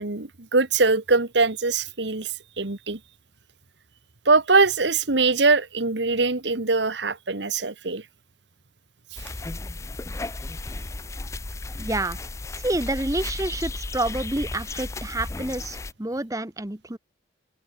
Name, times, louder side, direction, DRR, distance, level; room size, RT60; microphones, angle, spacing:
voice 1, 0.0-3.0 4.2-8.0 9.1-9.3, right 3 dB, 75° right, 1.7 m, -22 dB
sound 1, 9.2-15.9, left 2 dB, 15° left, 0.4 m, -34 dB
voice 2, 11.8-12.2 12.5-17.0, right 2 dB, 20° right, 1.0 m, -28 dB
open air
head